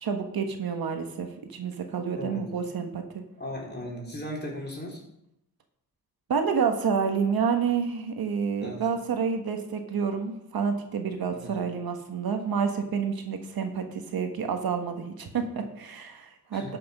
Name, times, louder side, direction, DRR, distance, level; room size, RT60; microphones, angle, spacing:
voice 1, 0.0-3.2 6.3-16.8, right 6 dB, 75° right, 6 dB, 1.4 m, -29 dB
voice 2, 2.1-2.4 3.4-5.0 8.6-8.8 11.3-11.5 16.5-16.8, left 1 dB, 25° left, -2 dB, 3.8 m, -37 dB
12.0 x 6.1 x 5.5 m, 0.81 s
cardioid pair, 70°, 37 cm